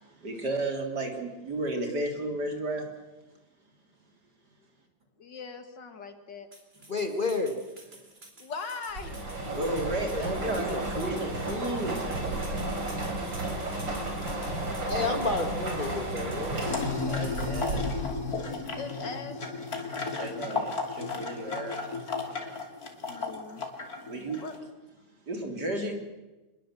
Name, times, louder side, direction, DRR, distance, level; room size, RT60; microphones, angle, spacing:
voice 1, 0.2-2.9 7.9-8.0 9.5-12.6 17.0-17.9 20.1-21.8 24.0-24.4 25.3-25.9, right 2 dB, 55° right, 3 dB, 4.0 m, -33 dB
voice 2, 5.2-6.5 8.4-9.6 13.3-13.4 14.4-15.2 17.7-17.8 18.7-19.5 21.8-21.9 23.1-23.6 24.4-24.6, left 4 dB, 65° left, 8 dB, 2.6 m, -40 dB
sound 1, 6.5-17.8, right 1 dB, 30° right, 4.3 m, -51 dB
voice 3, 6.9-7.5 10.1-11.2 14.9-16.6, left 3 dB, 25° left, 5 dB, 2.0 m, -31 dB
sound 2, 9.0-18.3, right 2 dB, 75° right, 5.7 m, -33 dB
sound 3, 16.6-24.6, left 4 dB, 50° left, 3.2 m, -33 dB
25.5 x 21.0 x 7.7 m, 1.1 s
omnidirectional pair, 2.1 m